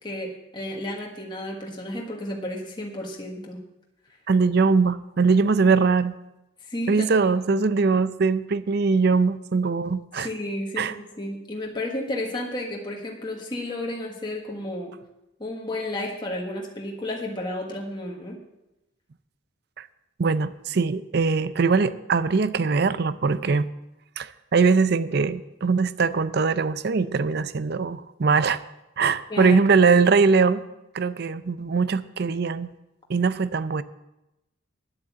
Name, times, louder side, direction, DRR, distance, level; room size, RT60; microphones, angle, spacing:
voice 1, 0.0-3.6 6.7-7.1 10.2-15.0 15.4-18.4 29.3-29.6, left 1 dB, 20° left, -1 dB, 1.5 m, -32 dB
voice 2, 4.3-6.1 6.9-10.3 10.8-10.9 19.8-19.9 20.2-23.7 24.2-28.6 29.0-30.6 30.9-32.7 33.1-33.8, right 4 dB, 55° right, 15 dB, 0.5 m, -21 dB
10.5 x 7.7 x 7.4 m, 0.93 s
head